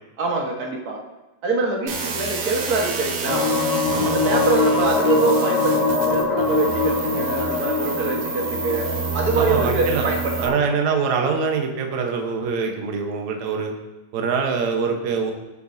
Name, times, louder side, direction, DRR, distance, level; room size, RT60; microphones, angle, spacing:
voice 1, 0.2-1.0 1.4-3.5 4.0-10.6, right 3 dB, 45° right, 0 dB, 1.3 m, -24 dB
sound 1, 1.9-10.5, right 5 dB, 85° right, 2.8 m, -29 dB
sound 2, 3.2-10.8, left 4 dB, 45° left, 1.4 m, -23 dB
voice 2, 9.4-10.1 10.4-13.7 14.1-15.3, right 5 dB, 70° right, 2 dB, 2.4 m, -24 dB
20.0 x 7.8 x 2.8 m, 1.1 s
omnidirectional pair, 3.5 m